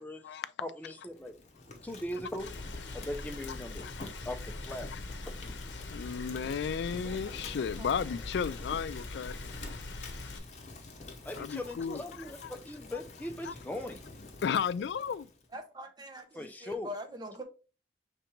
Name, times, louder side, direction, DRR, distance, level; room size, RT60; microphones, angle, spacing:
voice 1, 0.0-1.4 1.8-2.5 2.9-3.8 4.2-4.9 11.2-14.0 16.3-16.9, left 1 dB, 10° left, 0.5 m, -40 dB
Fire, 1.1-15.5, left 2 dB, 40° left, 0.9 m, -49 dB
Rain, 2.4-10.4, left 2 dB, 90° left, 0.7 m, -42 dB
voice 2, 5.9-9.3 11.4-12.0 12.4-12.5 13.5-13.6 14.4-15.3, left 7 dB, 70° left, 0.3 m, -33 dB
voice 3, 7.0-7.5 7.8-8.0 15.5-17.4, equal, 25° right, 0.7 m, -44 dB
5.1 x 3.4 x 3.0 m
head